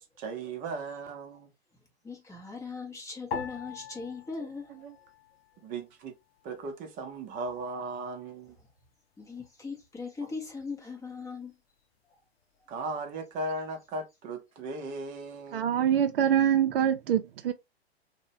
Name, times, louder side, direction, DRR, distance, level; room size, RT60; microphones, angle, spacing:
voice 1, 0.0-1.5 4.4-5.0 5.6-6.1 6.4-8.6 12.7-15.7, right 2 dB, 25° right, 0.6 m, -37 dB
voice 2, 2.0-4.7 9.2-11.5, left 4 dB, 10° left, 0.7 m, -39 dB
sound 1, 3.3-5.8 6.1-7.0 7.6-8.0, left 6 dB, 65° left, 0.6 m, -42 dB
voice 3, 15.5-17.5, right 9 dB, 60° right, 0.5 m, -24 dB
2.8 x 2.1 x 2.6 m
hypercardioid pair, 120°, 33 cm